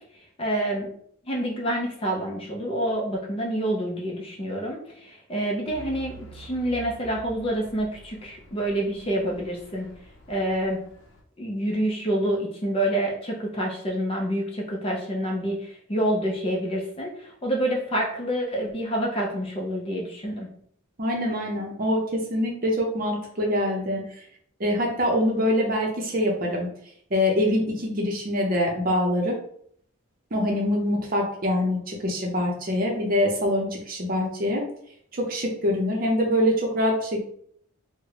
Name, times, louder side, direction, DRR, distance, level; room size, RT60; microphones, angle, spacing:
voice 1, 0.4-0.9 1.3-9.9 10.3-10.8 11.4-20.5, right 1 dB, 25° left, -1 dB, 0.6 m, -27 dB
Truck / Idling, 5.7-11.2, right 2 dB, 60° left, 0.7 m, -47 dB
voice 2, 21.0-24.2 24.6-26.7 27.1-29.4 30.3-34.6 35.2-37.2, left 1 dB, 40° right, 0 dB, 0.6 m, -24 dB
3.6 x 2.1 x 3.2 m, 0.65 s
head